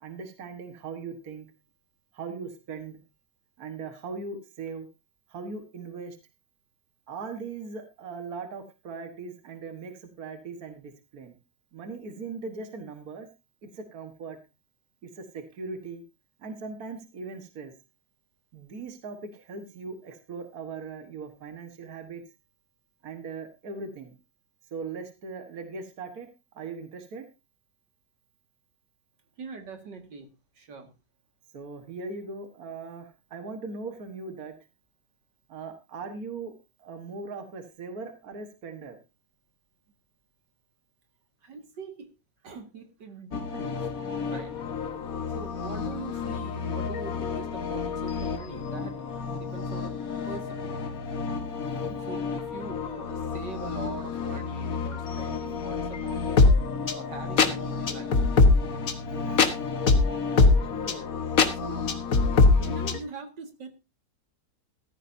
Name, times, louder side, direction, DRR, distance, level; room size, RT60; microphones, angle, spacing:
voice 1, 0.0-1.5 2.1-3.0 3.6-4.9 5.3-6.2 7.1-11.4 11.7-13.3 13.6-14.4 15.0-16.0 16.4-17.7 18.5-22.2 23.0-24.1 24.7-26.3 26.5-27.3 31.5-34.5 35.5-36.5 36.8-39.0 51.6-52.0 59.1-59.6, right 4 dB, 60° right, 6 dB, 1.9 m, -39 dB
voice 2, 29.4-30.3 30.6-30.9 41.4-42.1 42.4-43.9 44.2-44.6 44.8-45.0 45.3-49.9 50.3-50.7 51.9-56.4 56.8-58.1 60.6-61.1 61.5-61.9 62.5-63.7, right 4 dB, 80° right, 5 dB, 2.6 m, -42 dB
sound 1, 43.3-63.0, left 4 dB, 55° left, 1.7 m, -26 dB
15.0 x 14.0 x 2.7 m, 0.27 s
omnidirectional pair, 1.9 m